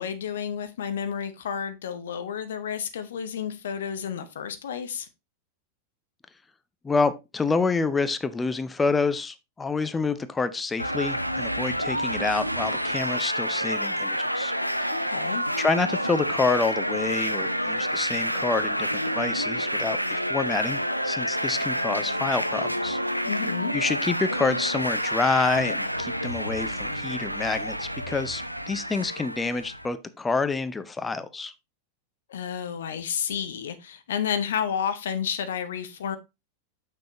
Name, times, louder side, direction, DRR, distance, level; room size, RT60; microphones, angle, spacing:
voice 1, 0.0-5.1 14.9-15.4 23.2-23.7 32.3-36.2, left 8 dB, 60° left, 0.9 m, -31 dB
voice 2, 6.8-14.5 15.6-23.0 23.7-31.5, left 4 dB, 15° left, 0.6 m, -28 dB
sound 1, 10.8-29.9, equal, 90° right, 0.4 m, -28 dB
6.7 x 6.1 x 3.0 m
figure-of-eight pair, 90°, 0 cm